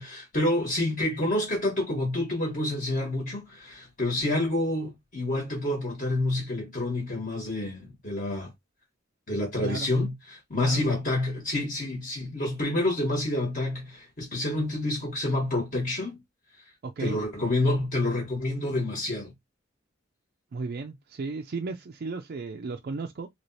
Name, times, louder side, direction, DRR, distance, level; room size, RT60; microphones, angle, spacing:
voice 1, 0.0-8.5 9.3-16.2 17.0-19.3, left 1 dB, 45° left, 1.4 m, -28 dB
voice 2, 16.8-17.2 20.5-23.3, right 4 dB, 50° right, 0.4 m, -34 dB
3.1 x 2.9 x 2.7 m
head